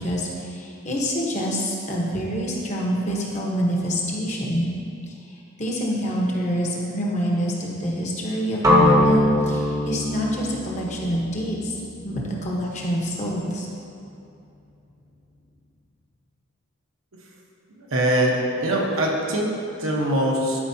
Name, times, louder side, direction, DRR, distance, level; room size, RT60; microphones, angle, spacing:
voice 1, 0.0-4.7 5.6-11.7 12.0-13.7, equal, 35° left, -3 dB, 0.9 m, -26 dB
sound 1, 8.6-12.6, left 1 dB, 15° right, 0.8 m, -22 dB
voice 2, 17.9-20.6, right 1 dB, 85° right, -2 dB, 1.1 m, -22 dB
12.0 x 4.7 x 2.7 m, 2.6 s
head